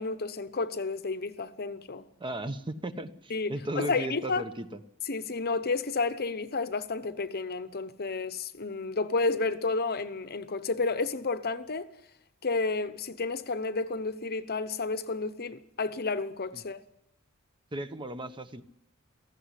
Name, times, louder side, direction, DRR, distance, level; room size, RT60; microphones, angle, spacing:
voice 1, 0.0-2.1 3.3-4.4 5.1-11.9 12.4-16.8, left 3 dB, 45° left, 0.9 m, -31 dB
voice 2, 2.2-4.7 17.7-18.6, right 1 dB, 20° right, 1.0 m, -36 dB
18.0 x 15.0 x 9.9 m
head